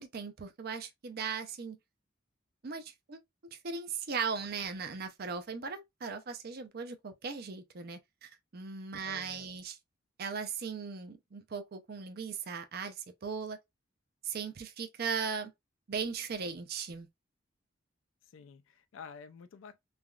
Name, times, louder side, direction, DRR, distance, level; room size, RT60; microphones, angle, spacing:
voice 1, 0.0-1.8 2.6-3.2 3.5-9.8 10.2-13.6 14.2-15.5 15.9-17.1, right 5 dB, 50° right, 0.5 m, -38 dB
voice 2, 9.0-9.6 18.3-19.8, left 6 dB, 75° left, 0.4 m, -50 dB
3.3 x 2.3 x 2.2 m
head